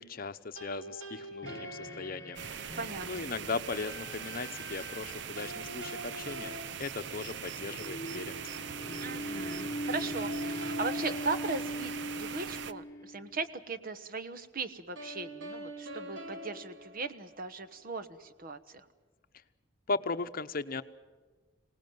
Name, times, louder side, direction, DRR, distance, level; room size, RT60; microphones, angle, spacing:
voice 1, 0.0-2.7 3.0-8.5 19.9-20.8, left 4 dB, 50° left, 11 dB, 0.9 m, -37 dB
sound 1, 0.6-2.7 5.4-7.8 10.2-12.7 15.0-17.8, right 1 dB, 90° right, 2.8 m, -45 dB
sound 2, 1.4-13.5, equal, 15° left, 1.8 m, -41 dB
sound 3, 2.4-12.7, right 8 dB, 65° right, 0.7 m, -41 dB
voice 2, 2.8-3.2 9.0-18.9, right 3 dB, 50° right, 12 dB, 1.2 m, -38 dB
25.5 x 18.5 x 9.3 m, 1.3 s
head